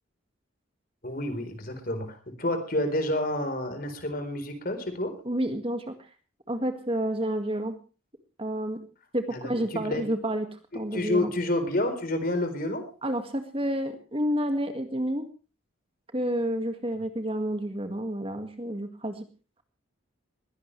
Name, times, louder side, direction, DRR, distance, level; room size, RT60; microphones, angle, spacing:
voice 1, 1.0-5.1 9.3-10.0 10.9-12.9, left 1 dB, 45° left, 9 dB, 4.2 m, -29 dB
voice 2, 5.3-5.9 6.5-7.7 8.4-8.8 9.1-11.3 13.0-15.2 16.1-19.3, right 1 dB, 25° right, 7 dB, 2.0 m, -29 dB
21.5 x 17.0 x 3.3 m, 0.35 s
head